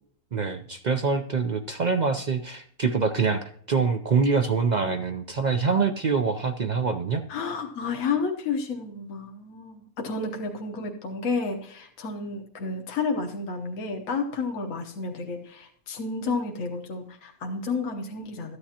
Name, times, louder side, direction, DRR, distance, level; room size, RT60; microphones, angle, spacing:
voice 1, 0.3-7.2, right 5 dB, 55° right, 7 dB, 0.5 m, -25 dB
voice 2, 7.3-18.6, left 4 dB, 70° left, 2 dB, 1.4 m, -31 dB
14.0 x 9.8 x 2.8 m, 0.63 s
omnidirectional pair, 1.4 m